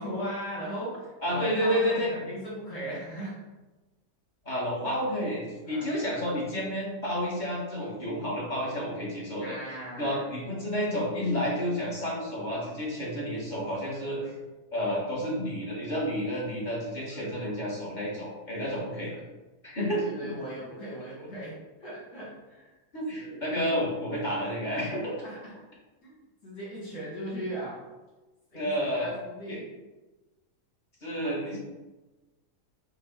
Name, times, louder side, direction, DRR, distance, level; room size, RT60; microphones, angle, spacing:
voice 1, 0.0-3.4 5.7-5.9 9.4-10.2 13.9-14.3 17.1-17.3 18.7-19.2 20.0-22.7 23.2-23.4 25.2-25.5 26.0-26.2 26.4-27.8 28.5-29.6, equal, 70° left, -8 dB, 1.9 m, -38 dB
voice 2, 1.2-2.1 4.4-9.5 10.0-14.2 14.7-19.2 19.6-20.3 22.9-25.1 28.5-29.1 29.5-29.6 31.0-31.6, equal, 30° left, -6 dB, 1.4 m, -30 dB
4.6 x 2.4 x 4.5 m, 1.1 s
omnidirectional pair, 1.6 m